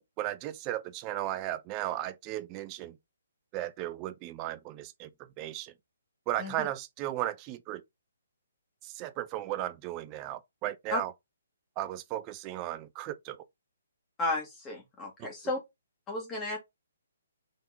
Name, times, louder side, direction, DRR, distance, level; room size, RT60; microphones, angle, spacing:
voice 1, 0.2-3.0 3.5-5.7 6.3-7.8 8.8-11.1 11.8-13.4 15.2-15.3, right 14 dB, 25° right, 0.4 m, -35 dB
voice 2, 14.2-15.6 16.1-16.6, left 2 dB, 15° left, 1.0 m, -33 dB
3.9 x 2.8 x 3.3 m
figure-of-eight pair, 135°, 0 cm